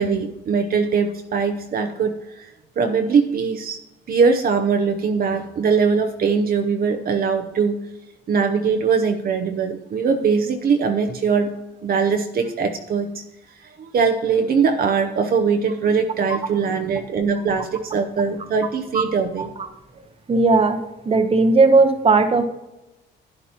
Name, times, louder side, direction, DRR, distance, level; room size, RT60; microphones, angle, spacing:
voice 1, 0.0-2.5 2.8-3.8 4.1-7.8 8.3-13.2 13.6-19.5, right 5 dB, 50° right, 5 dB, 0.8 m, -21 dB
voice 2, 20.3-20.8 21.1-22.4, right 3 dB, 30° right, 8 dB, 1.0 m, -16 dB
11.0 x 9.9 x 3.0 m, 0.97 s
cardioid pair, 90°, 20 cm